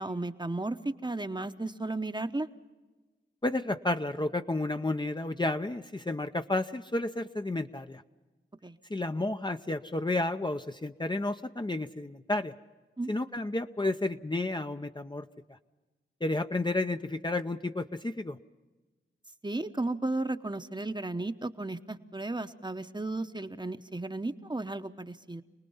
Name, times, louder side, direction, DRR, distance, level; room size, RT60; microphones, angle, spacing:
voice 1, 0.0-2.5 8.6-8.8 13.0-13.1 19.4-25.4, right 2 dB, 20° right, 9 dB, 0.9 m, -34 dB
voice 2, 3.4-8.0 8.9-12.6 13.1-15.3 16.2-18.4, left 2 dB, 20° left, 7 dB, 0.7 m, -31 dB
27.0 x 19.0 x 5.6 m, 1.2 s
cardioid pair, 45°, 21 cm